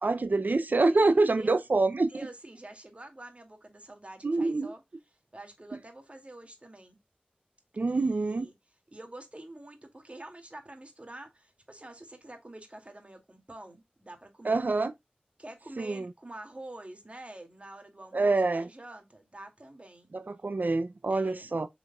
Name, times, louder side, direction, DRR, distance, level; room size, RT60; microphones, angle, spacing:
voice 1, 0.0-2.1 4.2-4.7 7.8-8.5 14.4-14.9 15.8-16.1 18.1-18.7 20.1-21.7, right 3 dB, 75° right, 0.5 m, -26 dB
voice 2, 0.9-1.6 2.1-4.8 5.3-7.0 7.9-8.5 8.9-14.6 15.4-20.1 21.1-21.5, right 1 dB, 40° right, 2.3 m, -47 dB
8.0 x 5.0 x 2.3 m
wide cardioid pair, 45°, 3 cm